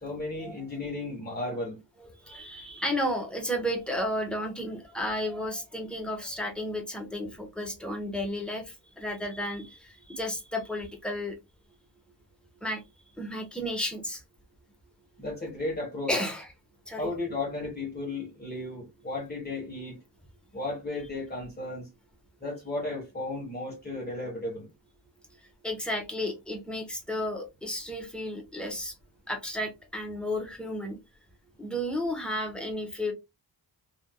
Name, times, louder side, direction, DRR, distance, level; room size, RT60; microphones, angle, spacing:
voice 1, 0.0-1.8 15.2-16.2 17.0-20.0 20.5-21.9 22.4-24.7, left 2 dB, 20° left, 1.3 m, -34 dB
voice 2, 2.0-11.4 12.6-12.8 13.2-14.2 16.1-16.5 16.9-17.1 25.6-28.9 29.3-31.0 31.6-33.1, left 1 dB, ahead, 1.1 m, -33 dB
3.5 x 2.6 x 2.2 m
wide cardioid pair, 100°, 43 cm